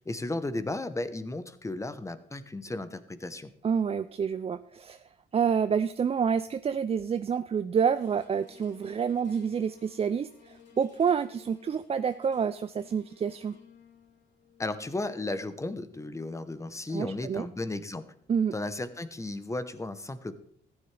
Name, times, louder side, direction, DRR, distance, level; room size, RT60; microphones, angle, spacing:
voice 1, 0.0-3.5 14.6-18.0 18.5-20.3, left 2 dB, 15° left, 12 dB, 0.9 m, -34 dB
voice 2, 3.6-5.0 5.3-13.5 16.9-17.5 18.3-18.5, right 7 dB, 30° right, 11 dB, 0.4 m, -28 dB
sound 1, 7.9-18.3 18.9-19.0, left 6 dB, 65° left, 2.7 m, -58 dB
14.5 x 9.7 x 3.3 m, 0.67 s
cardioid pair, 90°, 20 cm